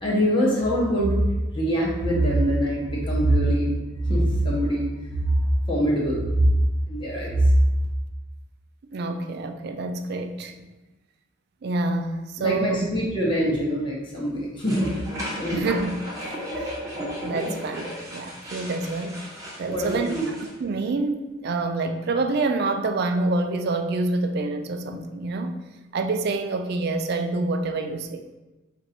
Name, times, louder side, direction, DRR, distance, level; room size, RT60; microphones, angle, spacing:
voice 1, 0.0-1.2 1.5-3.7 4.0-4.8 5.1-5.3 5.7-6.5 6.9-7.5 12.4-14.9 15.4-15.7 19.7-20.3, right 1 dB, 25° left, 0.9 m, -23 dB
voice 2, 8.9-10.5 11.6-12.9 15.5-16.0 16.5-16.7 17.2-19.2 19.6-20.2 20.6-25.5 25.9-28.2, right 3 dB, 55° right, 0.4 m, -27 dB
sound 1, 14.6-20.5, equal, 20° right, 0.9 m, -35 dB
4.6 x 2.6 x 4.1 m
head